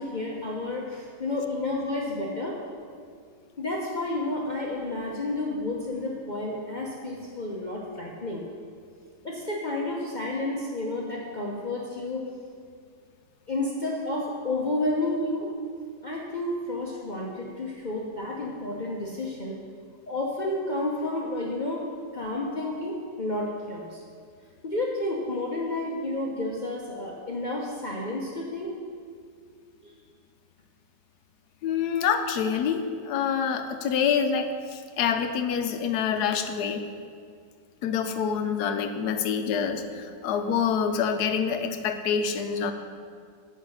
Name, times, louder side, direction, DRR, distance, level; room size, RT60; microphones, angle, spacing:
voice 1, 0.0-2.6 3.6-8.4 9.2-12.3 13.5-15.5 16.0-19.6 20.1-21.9 22.1-24.0 24.6-28.7 29.8-29.9, left 2 dB, 45° left, -3 dB, 0.6 m, -31 dB
voice 2, 31.6-36.8 37.8-42.7, left 7 dB, 70° left, 7 dB, 1.1 m, -26 dB
8.4 x 5.2 x 6.3 m, 2.1 s
omnidirectional pair, 1.9 m